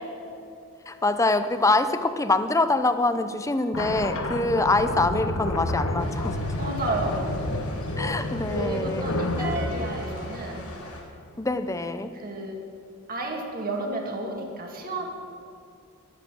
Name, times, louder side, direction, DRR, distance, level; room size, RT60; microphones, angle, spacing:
voice 1, 0.9-6.4 8.0-9.1 11.4-12.1, left 2 dB, 15° left, 10 dB, 0.6 m, -24 dB
sound 1, 3.7-11.1, left 1 dB, 65° left, 1.1 m, -30 dB
sound 2, 6.0-11.0, left 2 dB, 90° left, 4.1 m, -43 dB
voice 2, 6.5-7.3 8.1-8.2 8.5-10.7 12.2-12.6 13.1-15.1, right 2 dB, 40° right, 1 dB, 2.0 m, -32 dB
sound 3, 9.4-11.1, equal, 10° right, 1.5 m, -39 dB
14.5 x 11.0 x 6.2 m, 2.6 s
head